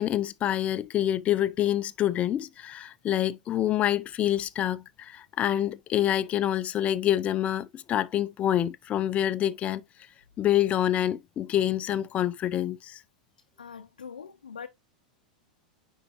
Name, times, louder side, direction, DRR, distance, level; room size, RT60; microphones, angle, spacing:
voice 1, 0.0-9.8 10.4-13.0, left 11 dB, 30° left, 0.6 m, -27 dB
voice 2, 13.6-14.7, left 6 dB, 90° left, 0.6 m, -42 dB
9.4 x 4.6 x 3.0 m
hypercardioid pair, 100°, 4 cm